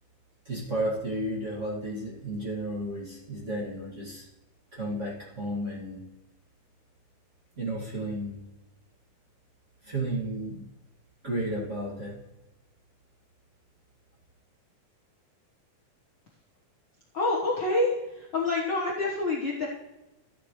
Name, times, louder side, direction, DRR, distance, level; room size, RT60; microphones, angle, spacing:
voice 1, 0.4-4.3 4.7-6.1 7.6-8.4 9.8-10.7 11.2-12.2, right 1 dB, 25° right, -4 dB, 1.7 m, -33 dB
voice 2, 17.1-17.9 18.3-19.7, left 2 dB, 85° left, -3 dB, 1.0 m, -26 dB
13.5 x 8.4 x 3.1 m, 0.98 s
omnidirectional pair, 4.1 m